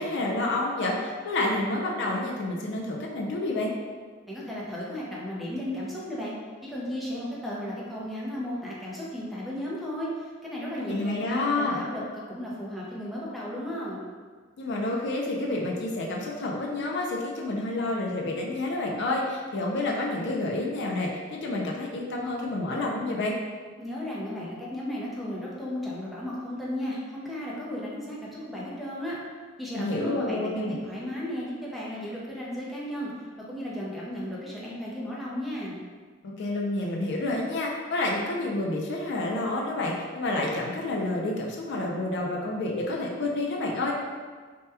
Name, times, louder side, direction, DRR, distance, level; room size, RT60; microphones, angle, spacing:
voice 1, 0.0-3.7 10.8-11.8 14.6-23.4 29.7-30.8 36.4-43.9, left 2 dB, 60° left, -1 dB, 0.4 m, -29 dB
voice 2, 4.3-6.3 6.6-14.0 23.8-29.2 29.6-35.8, equal, ahead, -7 dB, 0.5 m, -34 dB
2.8 x 2.2 x 3.3 m, 1.5 s
head